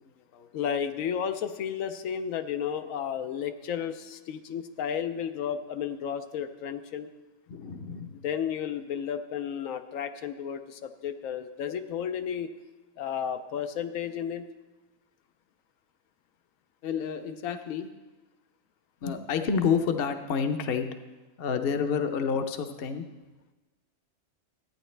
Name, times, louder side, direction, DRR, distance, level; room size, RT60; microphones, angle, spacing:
voice 1, 0.5-7.1 8.1-12.5 13.0-14.5, left 8 dB, 90° left, 8 dB, 1.0 m, -33 dB
voice 2, 7.5-8.1 16.8-17.9 19.0-20.9 21.4-23.1, left 6 dB, 55° left, 7 dB, 0.8 m, -29 dB
14.5 x 9.0 x 3.3 m, 1.2 s
omnidirectional pair, 1.4 m